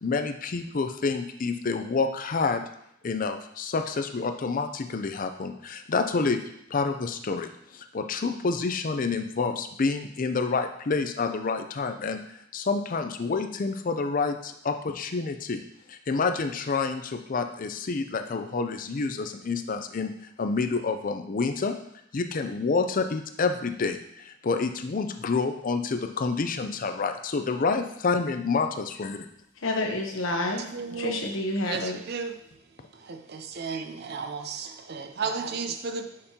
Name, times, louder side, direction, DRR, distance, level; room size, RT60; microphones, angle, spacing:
voice 1, 0.0-2.6 3.0-12.2 12.5-15.6 15.9-20.1 20.4-21.8 22.1-29.3, left 4 dB, 45° left, 7 dB, 0.5 m, -28 dB
voice 2, 29.6-30.7 31.0-32.0, left 2 dB, 80° left, 1 dB, 1.0 m, -28 dB
voice 3, 30.7-31.2 31.6-32.4 32.9-36.2, right 5 dB, 55° right, 7 dB, 0.5 m, -34 dB
6.6 x 5.3 x 2.8 m, 0.73 s
head